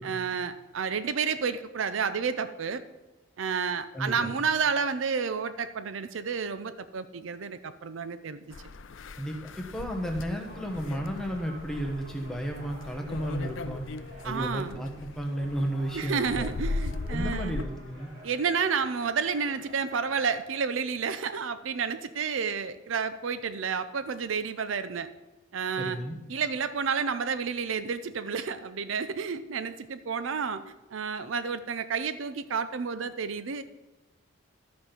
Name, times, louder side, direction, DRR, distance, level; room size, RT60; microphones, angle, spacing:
voice 1, 0.0-2.8 3.4-8.4 14.2-14.8 15.9-17.6 18.2-25.1 25.5-26.0 26.3-30.6 30.9-33.6, right 6 dB, 70° right, 12 dB, 0.5 m, -30 dB
voice 2, 3.9-4.3 9.2-13.8 14.2-16.5 17.1-18.1 25.8-26.2, equal, 5° left, 1 dB, 1.2 m, -33 dB
sound 1, 8.5-17.6, left 3 dB, 70° left, 0.5 m, -38 dB
sound 2, 10.2-20.4, left 1 dB, 50° right, 3.3 m, -51 dB
13.0 x 5.2 x 5.8 m, 1.1 s
head